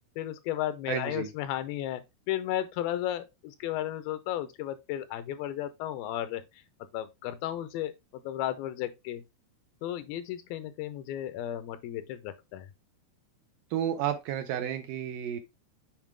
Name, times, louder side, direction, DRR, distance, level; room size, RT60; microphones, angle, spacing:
voice 1, 0.2-6.4 6.9-7.9 8.2-9.2 9.8-12.7, left 12 dB, 85° left, 2.4 m, -34 dB
voice 2, 0.9-1.3 13.7-15.4, right 10 dB, 75° right, 2.1 m, -31 dB
7.4 x 4.8 x 3.4 m
omnidirectional pair, 4.4 m